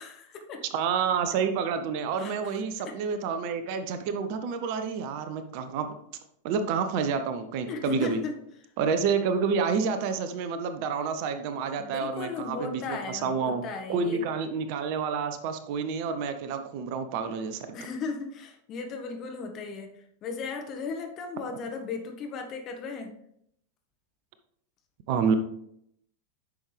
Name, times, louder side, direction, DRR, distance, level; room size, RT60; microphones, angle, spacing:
voice 1, 0.0-0.6 2.2-2.5 2.8-3.0 7.6-8.3 11.8-14.2 17.7-19.9 20.2-23.1, left 4 dB, 35° left, 4 dB, 1.5 m, -36 dB
voice 2, 0.7-5.9 6.4-8.2 8.8-13.6 13.9-17.8 25.1-25.3, right 6 dB, 45° right, 9 dB, 0.8 m, -29 dB
9.9 x 6.3 x 3.4 m, 0.73 s
figure-of-eight pair, 90°, 0 cm